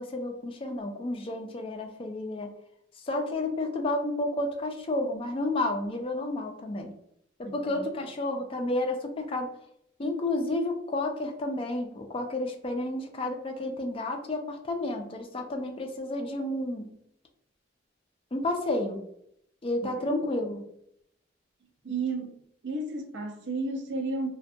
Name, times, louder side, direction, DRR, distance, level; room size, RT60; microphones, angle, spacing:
voice 1, 0.0-2.5 3.0-6.9 7.4-9.5 10.0-16.9 18.3-19.0 19.6-20.7, left 2 dB, 30° left, 0.3 m, -31 dB
voice 2, 7.5-7.9 19.8-20.2 21.8-22.4 22.6-24.4, right 3 dB, 65° right, 0.4 m, -33 dB
2.6 x 2.2 x 2.5 m
head